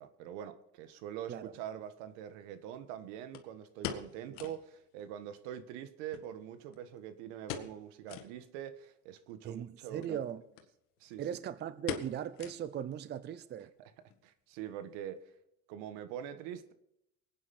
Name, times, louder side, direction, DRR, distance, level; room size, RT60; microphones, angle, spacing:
voice 1, 0.0-10.2 11.0-11.2 13.8-13.9 14.2-15.3 15.7-16.7, right 10 dB, 80° right, 1.5 m, -44 dB
sound 1, 1.2-1.3 3.3-4.7 5.0-5.1 5.4-5.5 6.1-7.0 7.4-7.8 8.1-8.3 8.8-8.9 9.9-10.2 10.6-10.7 11.0-11.3 11.9-12.9 13.2-13.3 13.9-14.2 14.5-14.6, left 9 dB, 75° left, 1.8 m, -42 dB
voice 2, 9.4-10.4 11.2-13.7, right 9 dB, 30° right, 0.7 m, -38 dB
24.0 x 9.3 x 4.3 m
cardioid pair, 135°, 34 cm